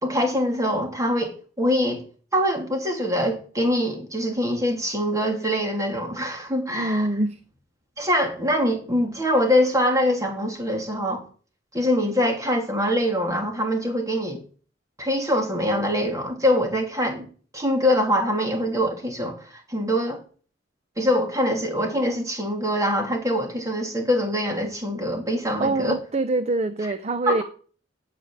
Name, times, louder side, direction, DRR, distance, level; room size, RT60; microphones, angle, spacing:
voice 1, 0.0-2.0 2.3-7.1 8.0-11.3 11.7-14.4 15.0-17.3 17.5-20.2 21.0-25.9 27.3-27.4, equal, 20° right, 2.8 m, -24 dB
voice 2, 6.7-7.4 25.6-27.4, right 2 dB, 35° right, 0.6 m, -24 dB
9.2 x 7.5 x 8.9 m
head